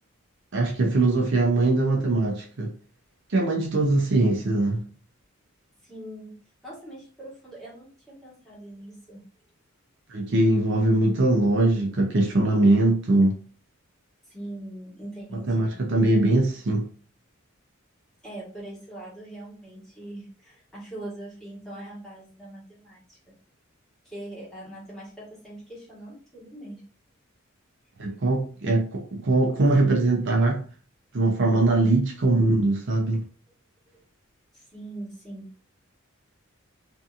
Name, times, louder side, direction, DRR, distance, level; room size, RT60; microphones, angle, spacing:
voice 1, 0.5-2.7 3.3-4.8 10.1-13.4 15.5-16.9 28.0-30.7 31.1-33.2, right 2 dB, 60° right, 0.5 m, -22 dB
voice 2, 5.8-6.3 6.6-9.2 14.3-15.8 18.2-23.3 24.0-26.8 33.9-34.0 34.5-35.5, right 1 dB, ahead, 1.4 m, -41 dB
2.8 x 2.6 x 2.4 m
head